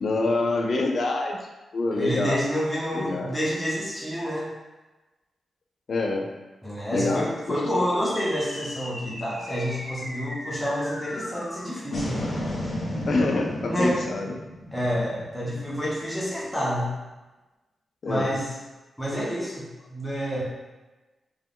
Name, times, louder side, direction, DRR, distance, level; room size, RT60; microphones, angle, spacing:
voice 1, 0.0-1.4 1.7-2.4 2.9-3.3 5.9-6.3 6.9-7.8 13.1-14.4 18.0-18.4, left 2 dB, 55° left, 2 dB, 0.5 m, -26 dB
voice 2, 1.9-4.5 6.6-12.2 13.7-14.0 14.7-16.9 18.1-18.5 19.0-20.4, equal, 5° left, -6 dB, 1.0 m, -28 dB
sound 1, 7.9-16.5, left 1 dB, 35° left, 1.3 m, -35 dB
4.4 x 2.2 x 3.7 m, 1.1 s
wide cardioid pair, 120°, 0 cm